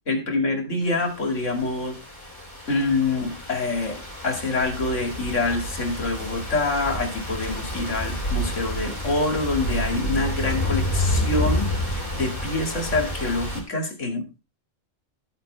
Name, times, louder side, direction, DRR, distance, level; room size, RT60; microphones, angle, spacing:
voice 1, 0.1-2.0 2.7-14.4, left 3 dB, 80° left, 5 dB, 2.7 m, -26 dB
sound 1, 1.3-13.6, left 1 dB, 20° left, 3.6 m, -29 dB
sound 2, 4.6-11.7, right 2 dB, 55° right, 4.2 m, -40 dB
13.5 x 9.0 x 3.3 m, 0.26 s
omnidirectional pair, 1.2 m